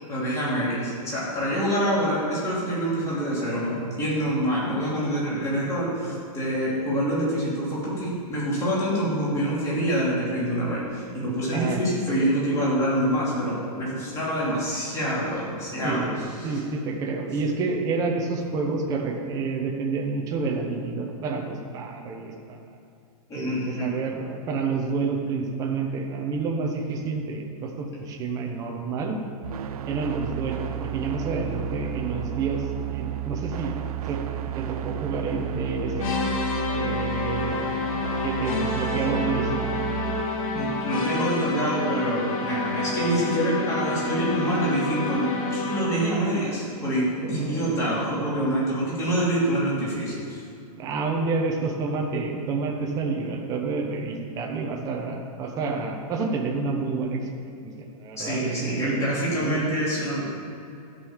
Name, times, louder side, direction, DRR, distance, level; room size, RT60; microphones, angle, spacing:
voice 1, 0.1-16.0 16.4-16.6 23.3-23.9 40.5-50.4 58.2-60.3, equal, 15° left, -7 dB, 3.0 m, -26 dB
voice 2, 15.8-22.6 23.3-29.2 29.9-33.7 34.1-36.1 36.7-37.6 38.2-39.7 47.2-47.9 50.8-57.2 57.8-59.0 59.4-59.7, right 4 dB, 15° right, 0 dB, 1.0 m, -29 dB
sound 1, 29.4-40.2, right 13 dB, 70° right, 0.7 m, -33 dB
sound 2, 36.0-46.1, left 3 dB, 60° left, 2.3 m, -28 dB
13.0 x 5.5 x 7.3 m, 2.6 s
supercardioid pair, 165°, 20 cm